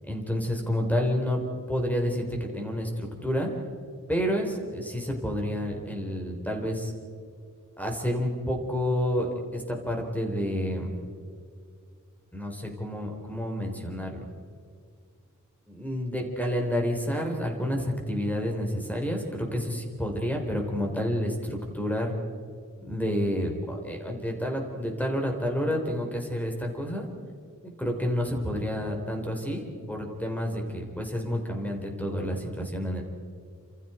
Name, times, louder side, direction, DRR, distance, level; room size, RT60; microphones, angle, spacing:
voice 1, 0.1-1.4 1.7-3.5 4.1-6.9 7.8-10.9 12.3-14.2 15.7-22.1 22.8-27.1 27.8-33.0, equal, 5° left, 1 dB, 4.2 m, -29 dB
29.0 x 27.0 x 4.5 m, 2.3 s
wide cardioid pair, 95°, 31 cm